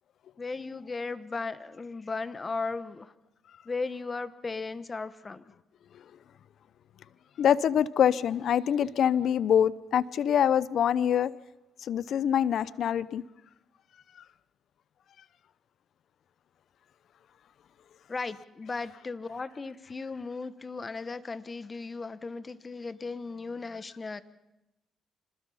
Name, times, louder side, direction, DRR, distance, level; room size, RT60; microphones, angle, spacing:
voice 1, 0.4-3.1 3.6-5.5 18.1-24.2, left 4 dB, 30° left, 15 dB, 1.1 m, -36 dB
voice 2, 7.4-11.3 11.8-13.2, left 9 dB, 65° left, 19 dB, 0.6 m, -25 dB
26.0 x 20.0 x 5.6 m, 0.93 s
cardioid pair, 90°, 0 cm